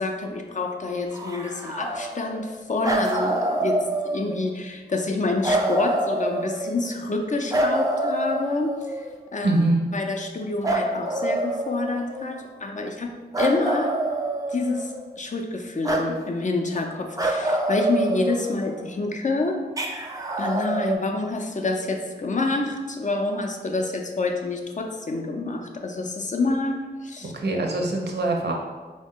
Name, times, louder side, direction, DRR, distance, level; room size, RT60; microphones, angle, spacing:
voice 1, 0.0-3.8 4.0-9.0 9.3-9.5 9.9-14.1 14.5-19.6 20.4-27.3, left 3 dB, 45° left, 3 dB, 0.4 m, -27 dB
sound 1, 1.1-2.5 2.8-4.5 5.4-6.9 7.5-9.1 10.6-12.3 13.3-15.0 15.8-16.1 17.2-18.8 19.8-21.0, right 1 dB, 20° right, 0.4 m, -26 dB
voice 2, 9.4-9.9 27.2-28.5, right 2 dB, 80° right, 1 dB, 0.6 m, -23 dB
3.9 x 2.1 x 3.5 m, 1.3 s
wide cardioid pair, 70°, 17 cm